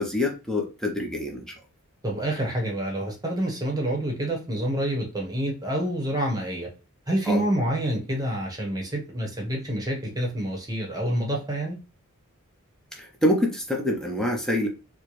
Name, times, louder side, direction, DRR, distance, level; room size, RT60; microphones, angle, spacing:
voice 1, 0.0-1.5 7.3-7.4 13.0-14.7, left 1 dB, 5° left, 1 dB, 0.6 m, -26 dB
voice 2, 2.0-6.7 7.1-11.8, right 1 dB, 15° right, 0 dB, 1.0 m, -27 dB
4.3 x 2.2 x 3.0 m, 0.31 s
head